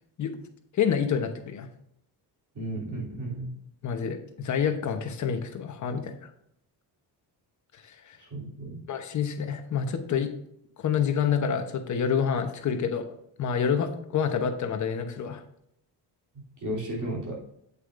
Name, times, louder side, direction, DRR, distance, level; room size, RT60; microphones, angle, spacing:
voice 1, 0.7-1.7 3.8-6.3 8.1-8.2 8.9-10.3 10.8-13.1 13.4-15.4, left 7 dB, 45° left, 6 dB, 1.0 m, -27 dB
voice 2, 2.5-3.5 8.2-8.8 16.6-17.4, right 1 dB, 45° right, -3 dB, 3.1 m, -34 dB
8.4 x 8.2 x 2.6 m, 0.74 s
cardioid pair, 170°, 42 cm